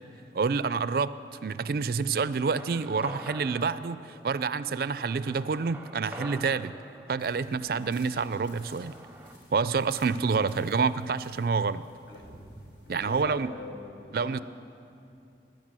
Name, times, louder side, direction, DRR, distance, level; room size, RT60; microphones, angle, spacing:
voice 1, 0.3-1.1 1.4-6.7 7.1-8.9 9.5-11.8 12.9-13.5 14.1-14.4, right 5 dB, 55° right, 15 dB, 0.4 m, -28 dB
sound 1, 2.4-9.3, right 1 dB, 10° right, 0.6 m, -46 dB
sound 2, 7.2-13.3, equal, 85° left, 3.9 m, -54 dB
voice 2, 12.1-12.4 12.9-14.4, left 2 dB, 65° left, 1 dB, 1.9 m, -44 dB
16.5 x 11.0 x 7.5 m, 2.6 s
head